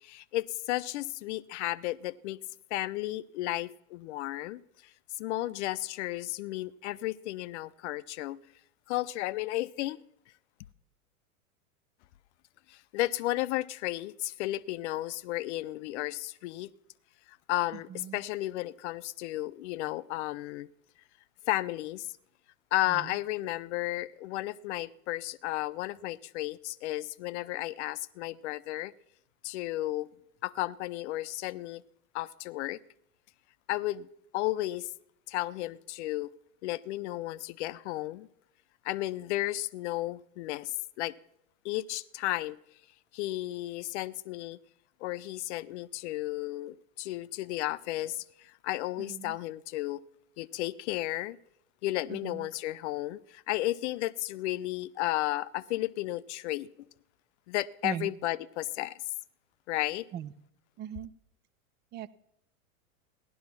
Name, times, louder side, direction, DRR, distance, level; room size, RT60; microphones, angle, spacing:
voice 1, 0.0-2.4 2.7-4.6 5.2-8.4 8.9-10.0 12.7-16.7 17.5-20.7 21.5-22.1 22.7-28.9 29.4-30.1 30.4-31.8 32.1-32.8 33.7-34.1 34.3-34.9 35.3-36.3 36.6-38.3 38.8-41.1 41.6-42.6 43.1-44.6 45.0-50.0 50.4-51.4 51.8-56.7 57.5-58.9 59.7-60.1, left 16 dB, 55° left, 0.6 m, -33 dB
voice 2, 52.1-52.5 57.8-58.1 60.1-60.3 60.8-61.1 61.9-62.1, right 10 dB, 25° right, 0.5 m, -39 dB
16.0 x 11.5 x 5.9 m
hypercardioid pair, 100°, 42 cm